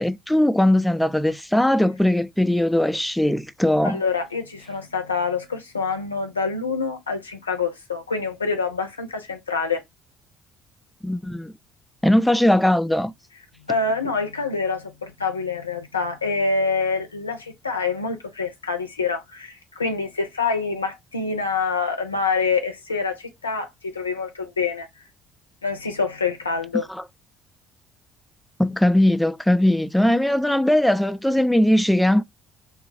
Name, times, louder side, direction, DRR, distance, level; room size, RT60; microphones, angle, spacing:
voice 1, 0.0-4.0 11.0-11.5 12.0-13.1 26.9-27.0 28.6-32.2, left 1 dB, 5° left, 0.4 m, -19 dB
voice 2, 3.8-9.8 13.6-24.9 25.6-26.9, left 4 dB, 85° left, 0.6 m, -26 dB
3.1 x 2.3 x 2.5 m
figure-of-eight pair, 50°, 0 cm